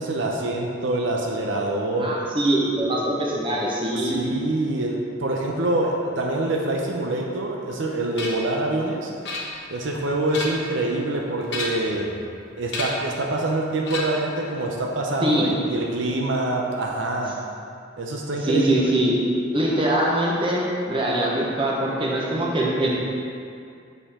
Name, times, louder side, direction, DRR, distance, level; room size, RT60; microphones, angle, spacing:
voice 1, 0.0-2.1 3.9-9.1 9.7-12.1 12.6-17.4 18.0-18.9, right 2 dB, 75° right, -1 dB, 0.6 m, -25 dB
voice 2, 2.0-4.2 15.2-15.5 18.4-19.1 19.5-22.9, right 1 dB, 25° right, -4 dB, 1.0 m, -23 dB
sound 1, 8.2-8.5 9.2-9.8 10.2-10.8 11.4-12.0 12.7-13.1 13.8-14.3, left 2 dB, 60° left, 1.0 m, -31 dB
6.5 x 5.4 x 3.6 m, 2.4 s
head